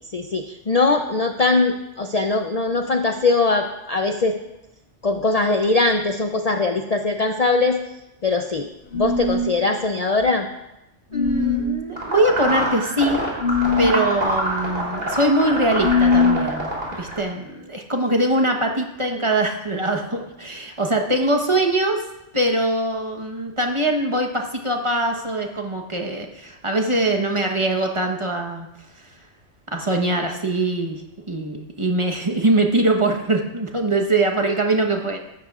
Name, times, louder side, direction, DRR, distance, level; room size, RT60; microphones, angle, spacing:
voice 1, 0.1-4.4 5.0-7.8 8.2-8.7 8.9-10.5, left 3 dB, 45° left, 5 dB, 0.6 m, -21 dB
sound 1, 8.9-9.5 11.1-11.8 13.4-14.0 15.8-16.4, left 4 dB, 65° left, 2.2 m, -20 dB
voice 2, 11.1-13.2 13.8-16.7 17.0-22.0 22.3-28.7 29.7-31.0 31.3-35.2, right 1 dB, 25° right, 2 dB, 1.1 m, -22 dB
sound 2, 12.0-17.2, right 1 dB, 45° right, 3.6 m, -26 dB
15.5 x 12.5 x 2.4 m, 0.91 s
omnidirectional pair, 1.2 m